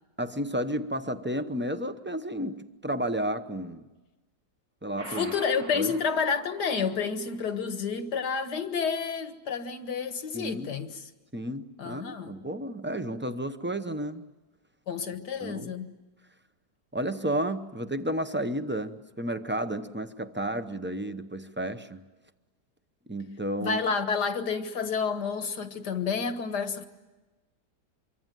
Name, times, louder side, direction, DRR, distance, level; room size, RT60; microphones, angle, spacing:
voice 1, 0.2-3.9 4.8-5.3 5.7-5.9 10.3-10.7 11.3-14.2 15.4-15.7 16.9-22.0 23.1-23.8, right 1 dB, 10° right, 0.5 m, -32 dB
sound 1, 5.0-7.4, right 3 dB, 65° right, 2.4 m, -46 dB
voice 2, 5.1-11.1 11.8-12.3 14.9-15.9 23.6-26.9, left 5 dB, 80° left, 2.0 m, -30 dB
25.5 x 24.0 x 9.3 m
omnidirectional pair, 1.7 m